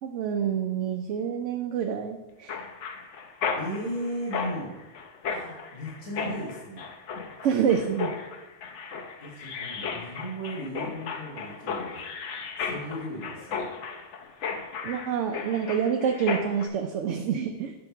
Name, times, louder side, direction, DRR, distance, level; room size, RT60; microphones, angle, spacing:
voice 1, 0.0-2.5 7.4-8.1 14.8-17.7, right 7 dB, 85° right, 4 dB, 0.9 m, -27 dB
Mechanisms, 2.5-16.7, left 5 dB, 85° left, 1.0 m, -35 dB
voice 2, 3.6-4.8 5.3-6.8 9.2-12.0 12.6-13.7, equal, 30° left, -6 dB, 1.6 m, -36 dB
8.5 x 2.9 x 5.8 m, 1.1 s
omnidirectional pair, 1.2 m